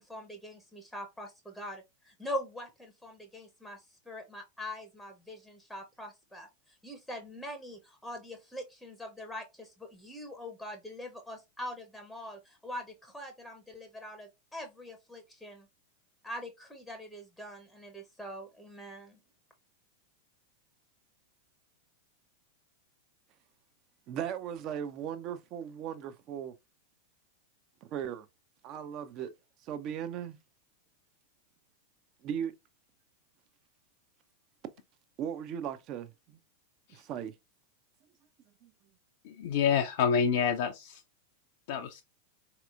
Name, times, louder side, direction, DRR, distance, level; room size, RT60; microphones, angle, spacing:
voice 1, 0.0-6.5 6.8-15.7 16.2-19.2, left 1 dB, ahead, 0.6 m, -43 dB
voice 2, 24.1-26.5 27.8-28.3 28.6-29.3 29.6-30.4 32.2-32.5 35.2-36.4 36.9-37.3 38.6-38.7, right 9 dB, 35° right, 0.5 m, -37 dB
voice 3, 39.2-41.0 41.7-42.0, left 7 dB, 50° left, 0.4 m, -28 dB
4.0 x 2.8 x 2.3 m
figure-of-eight pair, 90°, 0 cm